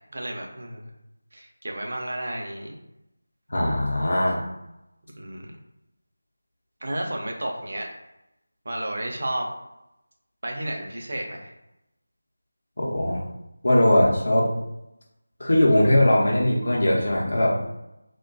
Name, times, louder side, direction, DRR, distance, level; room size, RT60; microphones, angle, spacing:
voice 1, 0.1-0.9 1.3-2.8 5.2-5.5 6.8-7.9 8.6-9.5 10.4-11.5, right 1 dB, 55° right, 1 dB, 0.5 m, -32 dB
voice 2, 3.5-4.4 12.8-13.2 13.6-14.5 15.4-17.6, left 1 dB, 65° left, -4 dB, 0.6 m, -20 dB
2.5 x 2.2 x 2.5 m, 0.89 s
figure-of-eight pair, 165°, 0 cm